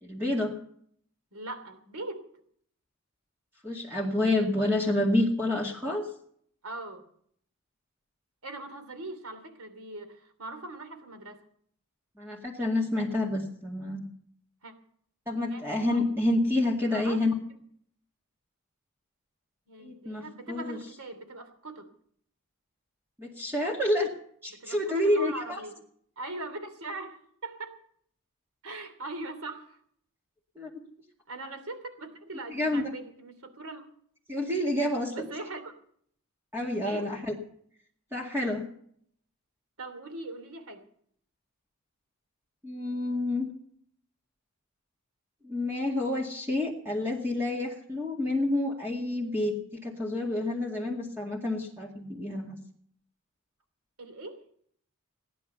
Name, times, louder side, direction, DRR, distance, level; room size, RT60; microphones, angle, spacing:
voice 1, 0.0-0.5 3.6-6.1 12.2-14.0 15.3-17.3 19.8-20.8 23.2-24.1 24.4-25.6 30.6-30.7 32.5-32.8 34.3-35.1 36.5-37.3 38.1-38.6 42.6-43.5 45.4-49.6 49.8-52.6, left 1 dB, 10° right, -2 dB, 2.2 m, -28 dB
voice 2, 1.3-2.3 6.6-7.1 8.4-11.4 14.6-14.7 15.5-15.7 16.9-17.2 19.7-21.9 24.6-25.8 26.2-27.8 28.6-29.8 31.3-33.8 35.1-35.7 36.8-37.1 39.8-40.8 54.0-54.5, right 2 dB, 85° right, 8 dB, 2.9 m, -41 dB
18.0 x 11.0 x 6.8 m, 0.63 s
head